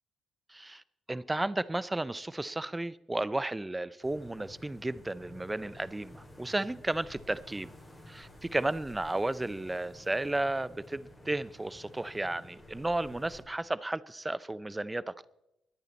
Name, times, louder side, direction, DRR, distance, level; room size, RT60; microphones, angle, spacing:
voice 1, 0.5-0.8 1.1-7.7 8.1-15.2, right 2 dB, 15° right, 0.5 m, -33 dB
sound 1, 4.0-13.4, left 1 dB, 15° left, 4.0 m, -52 dB
21.0 x 8.6 x 4.1 m
cardioid pair, 90°, 0 cm